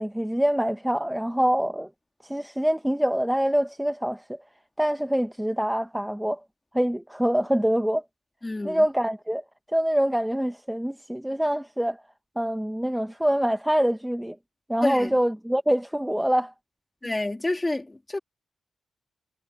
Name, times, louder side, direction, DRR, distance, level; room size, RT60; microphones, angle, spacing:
voice 1, 0.0-1.9 2.2-4.4 4.8-6.4 6.7-8.0 8.6-9.4 9.7-12.0 12.4-14.4 14.7-16.5, equal, 5° right, 0.7 m, -25 dB
voice 2, 8.4-8.8 14.8-15.1 17.0-18.2, left 2 dB, 15° left, 2.5 m, -28 dB
wide cardioid pair, 155°, 0 cm